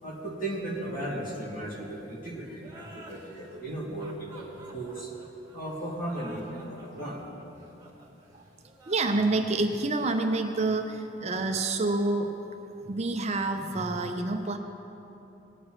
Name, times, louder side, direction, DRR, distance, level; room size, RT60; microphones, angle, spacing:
voice 1, 0.0-5.1 5.5-7.3, right 1 dB, 45° left, -5 dB, 2.6 m, -36 dB
sound 1, 2.6-11.9, right 2 dB, 15° right, 1.6 m, -52 dB
voice 2, 8.9-12.4 12.8-14.6, right 2 dB, 35° right, 5 dB, 0.5 m, -28 dB
18.0 x 9.0 x 3.2 m, 2.9 s
head